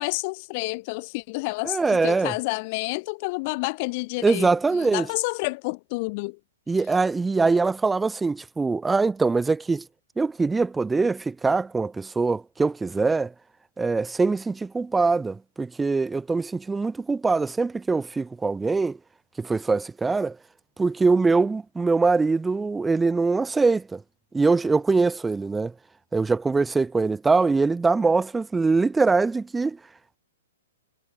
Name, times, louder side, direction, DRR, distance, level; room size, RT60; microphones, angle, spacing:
voice 1, 0.0-4.5 4.8-6.4, left 27 dB, 45° left, 0.5 m, -29 dB
voice 2, 1.6-2.3 4.2-5.1 6.7-9.8 10.2-13.3 13.8-19.0 19.4-20.4 20.8-24.0 24.3-25.7 26.1-29.8, right 4 dB, 10° right, 0.6 m, -23 dB
hypercardioid pair, 135°, 0 cm